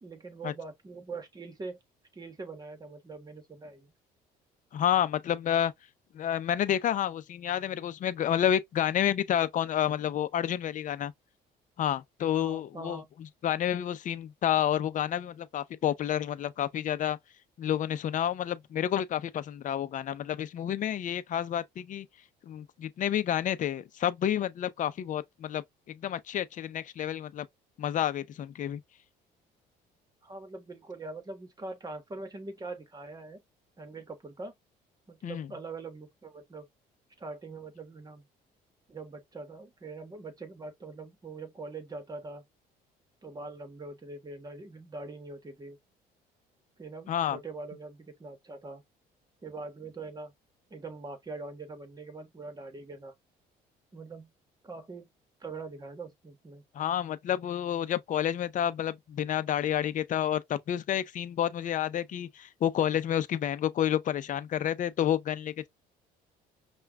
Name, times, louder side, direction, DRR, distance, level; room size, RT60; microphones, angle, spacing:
voice 1, 0.0-1.8 2.1-3.9 12.3-13.1 30.2-33.4 33.8-34.5 35.1-36.7 37.2-38.2 38.9-42.4 43.2-45.8 46.8-48.8 49.4-50.3 50.7-53.1 53.9-54.3 54.6-55.1 55.4-56.6, right 3 dB, 25° right, 1.3 m, -43 dB
voice 2, 4.7-5.7 6.1-11.1 11.8-13.0 13.4-17.2 17.6-22.1 22.5-27.5 27.8-28.8 35.2-35.5 47.1-47.4 56.7-65.7, left 10 dB, 50° left, 0.6 m, -29 dB
5.6 x 2.4 x 2.3 m
cardioid pair, 110°, 17 cm